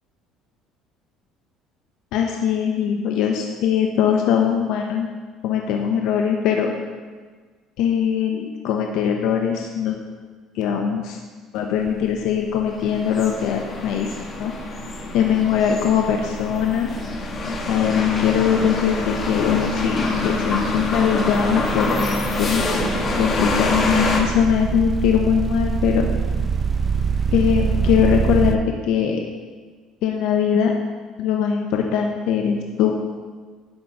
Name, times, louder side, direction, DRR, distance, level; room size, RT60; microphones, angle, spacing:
voice 1, 2.1-5.1 5.4-6.7 7.8-10.0 10.5-11.2 11.5-14.1 14.4-14.5 15.1-16.9 17.7-21.9 22.4-22.6 23.2-26.1 27.3-29.2 30.0-30.7 31.2-33.0, left 8 dB, 70° left, 2 dB, 0.8 m, -21 dB
sound 1, 11.8-12.1 12.4-28.6, right 5 dB, 25° right, 0.5 m, -27 dB
sound 2, 12.8-24.2, left 4 dB, 35° left, 1.4 m, -25 dB
10.5 x 3.9 x 6.8 m, 1.5 s
cardioid pair, 115°, 0 cm